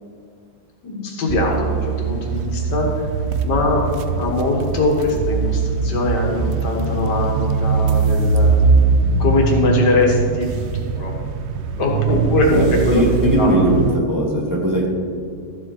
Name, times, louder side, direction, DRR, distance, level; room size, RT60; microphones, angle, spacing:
voice 1, 0.8-2.9 3.4-3.8 4.2-8.5 9.2-10.5 10.8-11.1 11.8-13.5, left 2 dB, 85° left, 0 dB, 2.2 m, -21 dB
sound 1, 1.3-14.0, right 5 dB, 85° right, 0.5 m, -21 dB
voice 2, 12.5-14.9, right 1 dB, 10° right, -2 dB, 1.5 m, -19 dB
13.5 x 7.7 x 4.5 m, 2.2 s
omnidirectional pair, 1.8 m